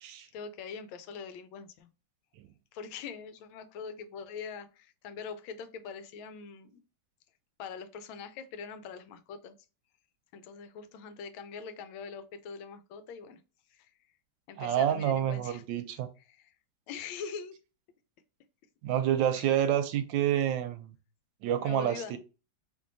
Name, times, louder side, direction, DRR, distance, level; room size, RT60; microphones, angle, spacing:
voice 1, 0.3-1.9 2.7-6.7 7.6-9.5 10.3-13.4 13.7-13.9 14.5-15.6 15.9-16.0 16.3-16.5 16.9-17.6 19.3-19.5 21.6-22.2, left 6 dB, 85° left, 1.4 m, -43 dB
voice 2, 14.6-16.1 18.8-20.9 21.4-22.2, right 10 dB, 75° right, 1.2 m, -28 dB
3.5 x 3.2 x 2.6 m
omnidirectional pair, 2.2 m